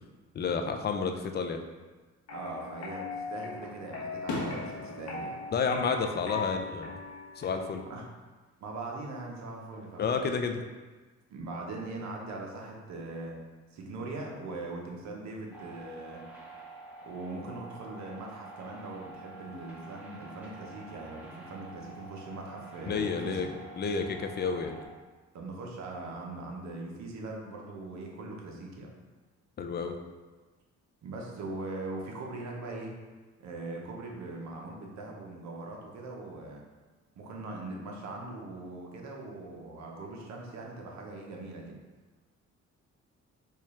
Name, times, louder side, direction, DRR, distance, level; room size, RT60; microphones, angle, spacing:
voice 1, 0.3-1.6 5.5-7.0 7.4-7.8 10.0-10.6 22.9-23.5 23.8-24.8 29.6-29.9, left 5 dB, 35° left, 5 dB, 0.4 m, -30 dB
sound 1, 2.3-7.9, left 4 dB, 55° left, 1.0 m, -40 dB
voice 2, 2.3-5.3 7.6-8.1 8.6-10.0 11.3-13.4 13.7-16.2 17.1-23.6 25.3-28.9 31.0-33.0 33.4-36.6 37.2-41.8, right 2 dB, 65° right, 0 dB, 0.8 m, -41 dB
Fireworks, 2.4-3.1 3.6-6.7 7.1-7.6 9.2-10.0, left 2 dB, 80° left, 0.8 m, -41 dB
sound 2, 15.5-24.9, right 2 dB, 5° right, 1.0 m, -48 dB
4.4 x 2.3 x 3.1 m, 1.3 s
cardioid pair, 90°, 30 cm